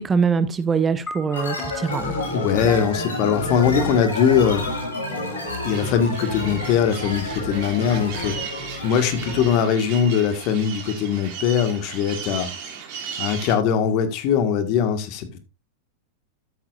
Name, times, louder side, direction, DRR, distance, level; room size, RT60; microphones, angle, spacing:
voice 1, 0.0-2.1, right 5 dB, 20° right, 0.7 m, -23 dB
sound 1, 1.1-5.6, left 2 dB, 20° left, 2.2 m, -42 dB
sound 2, 1.3-9.6, left 2 dB, 90° left, 6.3 m, -29 dB
voice 2, 2.3-4.7 5.6-12.5 13.2-15.4, left 8 dB, 50° left, 1.7 m, -21 dB
sound 3, 5.7-13.6, right 7 dB, 55° right, 2.9 m, -36 dB
12.5 x 7.6 x 2.5 m
hypercardioid pair, 100°, 0 cm